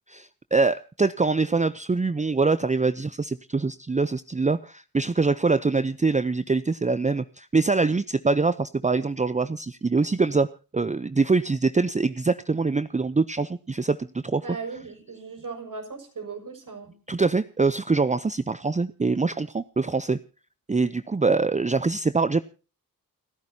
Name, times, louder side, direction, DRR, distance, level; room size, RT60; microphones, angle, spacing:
voice 1, 0.1-14.5 17.1-20.2 20.7-22.4, right 4 dB, 20° right, 14 dB, 0.7 m, -24 dB
voice 2, 14.4-16.9, right 4 dB, 60° right, 5 dB, 6.5 m, -37 dB
29.5 x 10.5 x 2.8 m, 0.35 s
cardioid pair, 60°, 36 cm